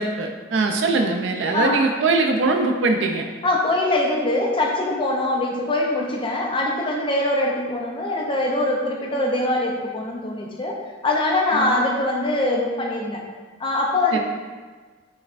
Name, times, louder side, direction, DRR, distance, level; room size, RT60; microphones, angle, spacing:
voice 1, 0.0-3.2 11.6-11.7 14.1-14.2, right 3 dB, 70° right, 3 dB, 0.4 m, -21 dB
voice 2, 1.5-2.0 3.4-10.8 11.0-13.2 13.6-14.2, left 2 dB, 25° left, 0 dB, 0.5 m, -23 dB
6.3 x 2.1 x 2.5 m, 1.4 s
head